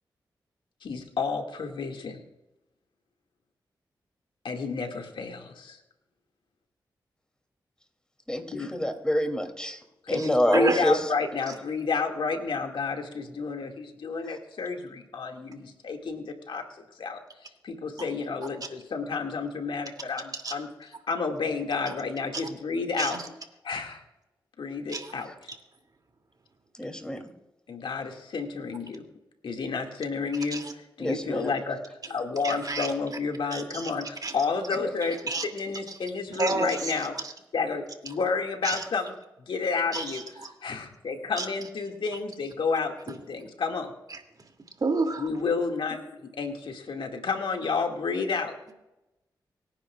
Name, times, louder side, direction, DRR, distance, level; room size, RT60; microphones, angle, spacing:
voice 1, 0.8-2.2 4.4-5.8 8.5-8.7 10.0-16.6 17.0-17.2 17.6-23.3 23.6-24.0 24.6-25.5 27.7-29.0 29.4-31.8 32.1-37.1 37.5-39.1 39.5-40.2 40.6-43.9 45.2-48.5, left 4 dB, 75° left, 3 dB, 2.1 m, -31 dB
voice 2, 8.3-9.8 10.1-11.1 14.2-14.4 25.3-25.4 26.8-27.2 31.0-31.5 34.8-34.9, equal, 10° left, 3 dB, 2.8 m, -27 dB
voice 3, 10.2-10.9 20.3-20.5 22.3-22.5 23.0-23.2 24.9-25.1 30.5-30.7 32.4-32.9 33.5-33.9 34.2-34.3 35.3-35.5 35.9-36.0 36.3-37.3 38.6-38.8 39.9-40.5 41.4-41.5 44.1-44.2 44.8-45.3, right 3 dB, 50° right, 4 dB, 2.6 m, -31 dB
25.0 x 10.0 x 2.4 m, 0.95 s
supercardioid pair, 40°, 9 cm